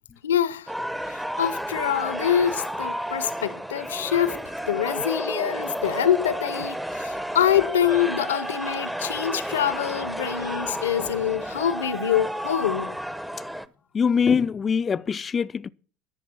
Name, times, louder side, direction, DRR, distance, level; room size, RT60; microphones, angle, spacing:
voice 1, 0.2-0.7 1.1-13.0, left 10 dB, 80° left, 0.7 m, -25 dB
sound 1, 0.7-13.7, equal, 5° right, 0.7 m, -31 dB
voice 2, 13.9-15.7, left 6 dB, 30° left, 0.4 m, -23 dB
13.5 x 6.0 x 6.2 m
hypercardioid pair, 75°, 0 cm